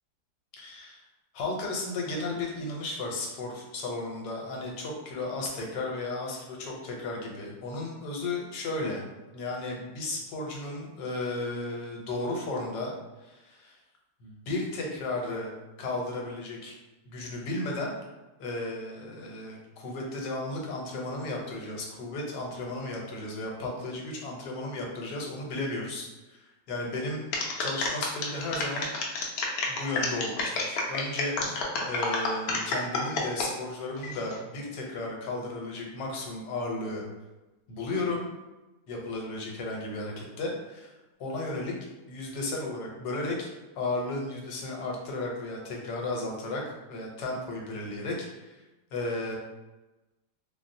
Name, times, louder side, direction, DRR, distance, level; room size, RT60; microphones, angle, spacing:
voice 1, 0.6-1.0 1.3-9.0 9.3-12.9 13.2-13.8 14.2-15.5 15.8-16.8 17.1-17.9 18.4-27.2 27.6-28.9 29.7-37.0 37.7-38.3 38.9-40.9 41.2-41.7 42.1-43.5 43.7-48.6 48.9-49.4, left 2 dB, 90° left, -1 dB, 1.3 m, -34 dB
sound 1, 27.3-33.5 34.0-34.4, left 3 dB, 70° left, 1.0 m, -30 dB
4.1 x 2.0 x 2.6 m, 1.1 s
omnidirectional pair, 1.8 m